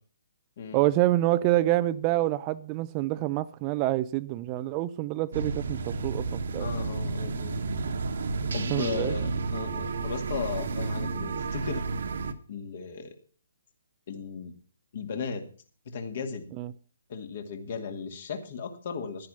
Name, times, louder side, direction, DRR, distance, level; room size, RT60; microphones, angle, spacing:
voice 1, 0.7-6.7 8.7-9.1 16.6-16.7, right 15 dB, 25° right, 0.5 m, -27 dB
sound 1, 5.3-12.3, right 4 dB, 55° right, 1.3 m, -31 dB
voice 2, 6.6-7.6 8.5-11.9 12.5-13.1 14.1-14.5 14.9-15.4 15.9-16.5 17.1-19.3, left 5 dB, 45° left, 2.3 m, -36 dB
12.0 x 10.0 x 5.7 m
figure-of-eight pair, 135°, 0 cm